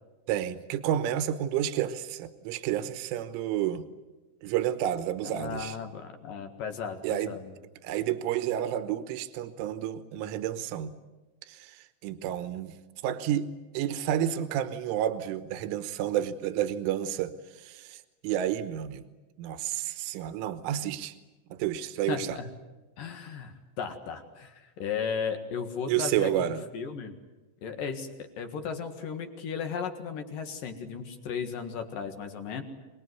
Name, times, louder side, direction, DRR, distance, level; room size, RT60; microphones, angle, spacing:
voice 1, 0.3-3.8 4.4-5.8 7.0-7.4 7.8-11.0 11.5-12.7 13.0-13.5 13.8-19.0 19.4-21.2 21.5-22.4 25.9-26.6, right 11 dB, 80° right, 12 dB, 3.6 m, -30 dB
voice 2, 5.2-7.5 22.1-22.5 23.0-27.1 27.6-32.6, left 6 dB, 60° left, 7 dB, 2.6 m, -35 dB
27.0 x 20.5 x 9.5 m, 1.1 s
omnidirectional pair, 5.7 m